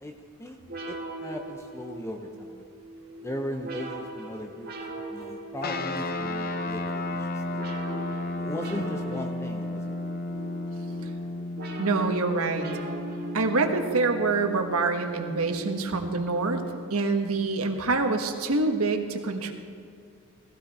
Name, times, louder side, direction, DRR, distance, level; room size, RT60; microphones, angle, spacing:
sound 1, 0.7-16.9, right 2 dB, 45° right, 1.8 m, -41 dB
voice 1, 0.9-2.6 3.2-4.7 5.1-7.7 8.4-9.9, left 1 dB, 10° left, 4 dB, 0.7 m, -37 dB
sound 2, 5.6-16.3, left 2 dB, 45° left, 0.8 m, -34 dB
voice 2, 11.8-12.7 13.3-16.6 16.9-19.5, right 3 dB, 80° right, 5 dB, 1.4 m, -26 dB
18.0 x 15.5 x 4.2 m, 2.4 s
head